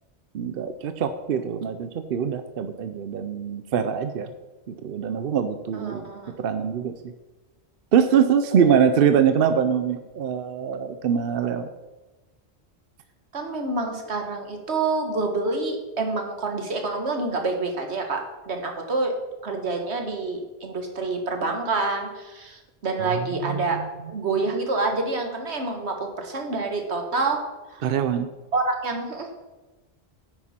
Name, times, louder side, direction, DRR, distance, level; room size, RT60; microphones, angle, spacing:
voice 1, 0.3-4.3 4.7-6.0 6.4-7.1 7.9-11.7 23.0-23.9 27.8-28.3, right 7 dB, 65° right, 10 dB, 0.8 m, -23 dB
voice 2, 5.7-6.4 8.5-8.8 13.3-19.1 19.4-23.8 24.1-27.4 27.7-27.8 28.5-29.3, right 3 dB, 80° right, 4 dB, 1.8 m, -27 dB
9.7 x 9.1 x 4.3 m, 1.1 s
omnidirectional pair, 1.1 m